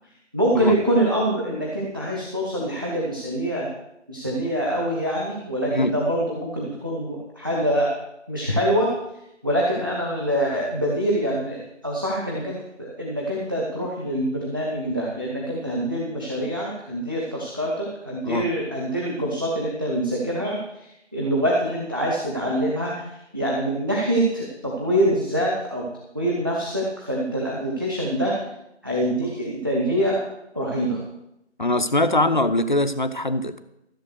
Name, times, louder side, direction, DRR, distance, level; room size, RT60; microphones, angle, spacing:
voice 1, 0.3-3.7 4.1-7.9 8.3-8.9 9.4-20.9 21.1-22.9 23.3-25.9 26.1-28.3 28.8-30.3 30.5-31.0, right 1 dB, 20° right, -3 dB, 1.0 m, -25 dB
voice 2, 31.6-33.6, left 1 dB, 40° left, 11 dB, 0.7 m, -22 dB
14.0 x 7.2 x 6.3 m, 0.85 s
figure-of-eight pair, 165°, 36 cm